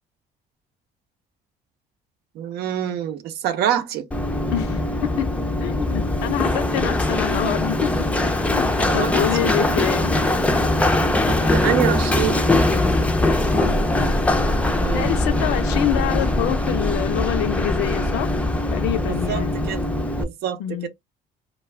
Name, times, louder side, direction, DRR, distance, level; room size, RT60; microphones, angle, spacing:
voice 1, 2.3-4.1 8.9-9.5 11.3-12.4 14.8-15.2 19.0-19.8 20.1-20.9, right 10 dB, 70° right, 0.6 m, -26 dB
Run, 4.1-20.2, left 1 dB, 10° left, 0.4 m, -21 dB
voice 2, 4.5-5.3 5.6-10.3 13.2-13.9 14.9-18.3 18.7-19.5 20.6-20.9, left 12 dB, 90° left, 0.5 m, -26 dB
2.3 x 2.2 x 3.2 m
cardioid pair, 110°, 17 cm